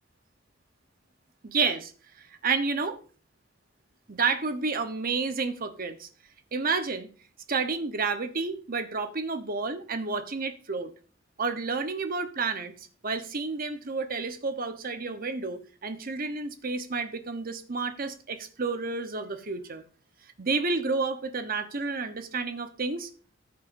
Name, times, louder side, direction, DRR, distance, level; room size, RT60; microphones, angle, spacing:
voice 1, 1.4-1.9 2.4-3.0 4.1-6.1 6.5-7.1 7.5-10.9 11.4-19.8 20.4-23.1, right 4 dB, 50° right, 1.0 m, -30 dB
14.0 x 7.9 x 2.7 m
head